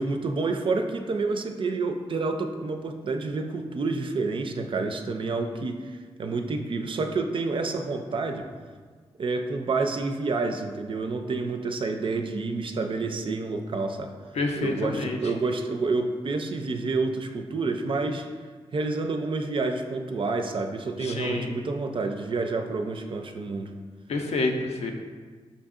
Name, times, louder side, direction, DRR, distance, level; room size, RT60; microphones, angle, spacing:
voice 1, 0.0-8.5 9.2-14.1 14.6-18.3 18.7-23.7, right 3 dB, 50° right, 5 dB, 0.4 m, -29 dB
voice 2, 14.4-15.2 21.0-21.5 24.1-24.9, left 3 dB, 70° left, 3 dB, 0.5 m, -28 dB
5.1 x 2.7 x 2.4 m, 1.5 s
cardioid pair, 55°, 11 cm